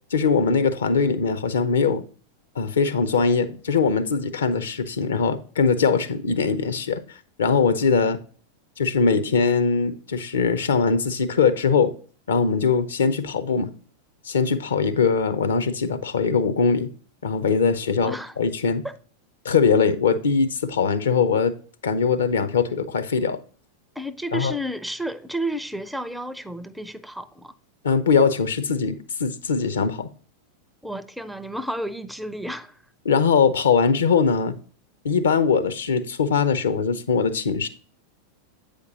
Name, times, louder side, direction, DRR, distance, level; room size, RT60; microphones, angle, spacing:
voice 1, 0.1-2.1 2.6-7.0 7.4-8.2 8.8-11.9 12.3-13.7 14.2-16.9 17.2-18.8 19.4-21.5 21.8-23.4 24.3-24.5 27.8-30.1 33.0-34.5 35.0-37.7, left 5 dB, 65° left, 0.6 m, -21 dB
voice 2, 18.0-18.4 18.8-18.9 24.0-27.5 30.8-32.8, right 1 dB, ahead, 0.4 m, -31 dB
8.1 x 5.1 x 2.6 m
figure-of-eight pair, 90°, 0 cm